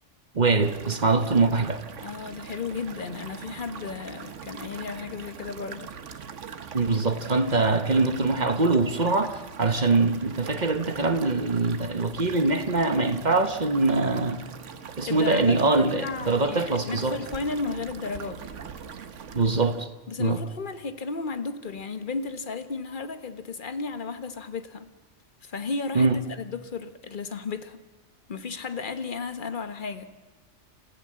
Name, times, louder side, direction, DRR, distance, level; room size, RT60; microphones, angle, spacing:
voice 1, 0.3-1.8 6.7-14.4 15.0-17.2 19.3-19.9 20.2-20.4 25.9-26.2, right 3 dB, 40° right, 1.2 m, -23 dB
sound 1, 0.6-19.9, right 7 dB, 85° right, 1.4 m, -42 dB
voice 2, 2.0-5.9 15.1-18.4 20.1-24.9 25.4-27.8 28.3-30.1, left 4 dB, 45° left, 1.3 m, -34 dB
28.5 x 14.5 x 7.6 m
omnidirectional pair, 1.2 m